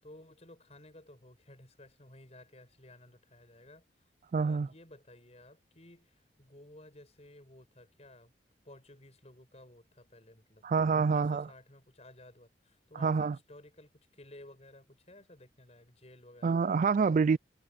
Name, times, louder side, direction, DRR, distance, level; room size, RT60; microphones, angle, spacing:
voice 1, 0.0-3.8 4.4-8.3 8.6-16.6, left 1 dB, 35° left, 7.5 m, -55 dB
voice 2, 4.3-4.7 10.6-11.5 13.0-13.4 16.4-17.4, right 5 dB, 45° right, 0.3 m, -27 dB
head